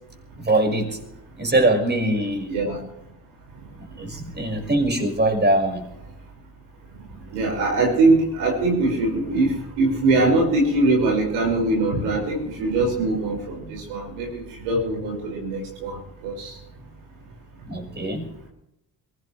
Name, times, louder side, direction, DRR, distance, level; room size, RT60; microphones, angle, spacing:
voice 1, 0.4-1.0 1.4-2.5 4.0-5.8 17.7-18.3, right 1 dB, 20° right, 3 dB, 5.7 m, -22 dB
voice 2, 2.5-2.8 7.3-16.5, right 2 dB, 80° right, -1 dB, 5.7 m, -22 dB
22.5 x 17.5 x 3.3 m, 0.82 s
hypercardioid pair, 45°, 48 cm